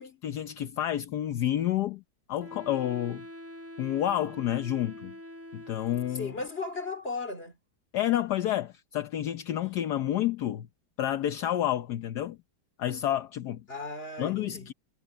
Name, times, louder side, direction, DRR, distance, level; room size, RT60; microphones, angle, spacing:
voice 1, 0.2-2.0 2.3-3.3 3.8-5.1 5.5-6.3 7.9-10.7 11.0-12.4 12.8-13.6 14.2-14.7, left 12 dB, 70° left, 1.4 m, -29 dB
Wind instrument woodwind instrument, 2.4-6.5, equal, 10° right, 0.8 m, -45 dB
voice 2, 6.2-7.6 13.7-14.7, left 3 dB, 35° left, 3.3 m, -36 dB
omnidirectional pair, 1.8 m